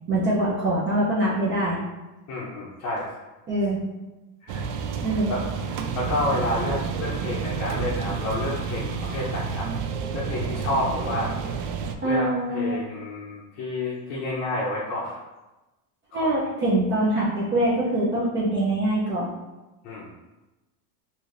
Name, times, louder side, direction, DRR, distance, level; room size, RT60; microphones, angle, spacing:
voice 1, 0.1-1.8 3.5-3.8 5.0-5.3 12.0-12.8 16.1-19.3, right 1 dB, 25° right, -7 dB, 0.5 m, -24 dB
voice 2, 2.3-3.1 4.4-4.6 5.3-9.7 10.1-11.3 12.0-15.2 16.1-16.3 19.8-20.2, left 1 dB, 35° left, -6 dB, 0.6 m, -29 dB
sound 1, 4.5-11.9, right 6 dB, 70° right, 0.5 m, -30 dB
4.8 x 2.7 x 2.5 m, 1.1 s
cardioid pair, 155°, 47 cm